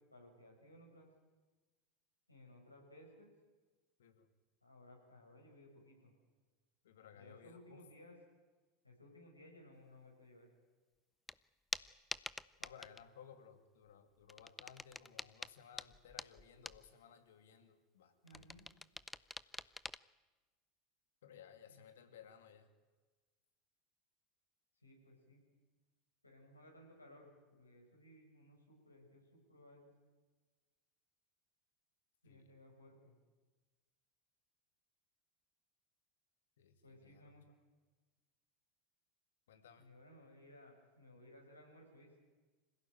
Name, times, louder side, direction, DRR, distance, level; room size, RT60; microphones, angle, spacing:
voice 1, 0.1-1.1 2.3-3.3 4.6-6.1 7.1-8.2 8.8-10.5 18.2-18.6 21.7-21.8 24.8-25.4 26.2-29.9 32.2-33.1 36.8-37.4 39.8-42.1, left 1 dB, 85° left, 0 dB, 6.2 m, -60 dB
voice 2, 6.8-7.8 12.6-18.5 21.2-22.7 32.2-32.5 36.6-37.3 39.5-39.9, left 8 dB, 65° left, 8 dB, 2.4 m, -59 dB
sound 1, 11.3-11.4 11.7-13.0 14.2-16.9 18.3-20.0, left 2 dB, 10° left, 0.6 m, -46 dB
26.0 x 16.5 x 9.2 m, 1.3 s
figure-of-eight pair, 75°, 0 cm